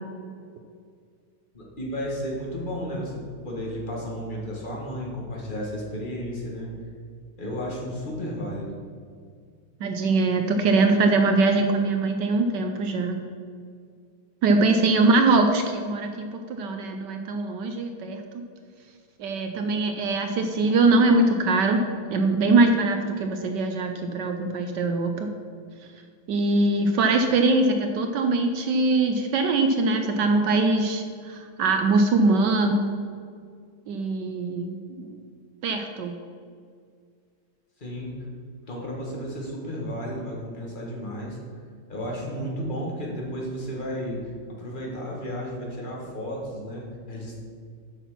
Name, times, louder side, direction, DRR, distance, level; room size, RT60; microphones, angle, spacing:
voice 1, 1.5-6.7 7.4-8.8 37.8-38.2 38.7-41.4 41.9-47.4, equal, 25° left, -3 dB, 1.7 m, -33 dB
voice 2, 9.8-13.3 14.4-18.2 19.2-21.8 22.1-25.3 26.3-33.0 33.9-35.1 35.6-36.1, right 3 dB, 70° right, 5 dB, 1.2 m, -22 dB
8.1 x 5.9 x 5.8 m, 2.1 s
omnidirectional pair, 2.2 m